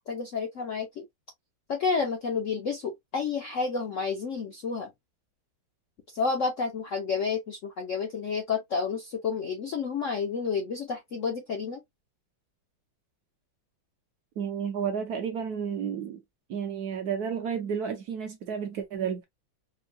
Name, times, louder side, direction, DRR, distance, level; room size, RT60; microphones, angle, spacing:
voice 1, 0.1-1.0 1.7-4.9 6.1-11.8, left 5 dB, 65° left, 0.7 m, -30 dB
voice 2, 14.4-16.2 16.5-19.2, right 7 dB, 65° right, 1.0 m, -31 dB
4.5 x 2.2 x 2.6 m
omnidirectional pair, 2.1 m